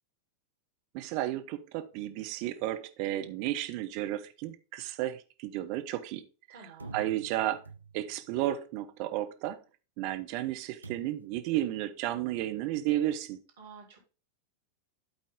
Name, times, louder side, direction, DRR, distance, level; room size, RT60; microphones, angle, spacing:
voice 1, 0.9-6.2 6.9-7.6 7.9-9.6 10.0-13.4, right 14 dB, 45° right, 1.0 m, -33 dB
voice 2, 6.5-6.9 13.6-14.0, right 5 dB, 60° right, 3.2 m, -50 dB
sound 1, 6.8-8.3 10.8-11.4, right 3 dB, 85° right, 0.5 m, -48 dB
12.0 x 4.1 x 3.7 m
figure-of-eight pair, 90°, 0 cm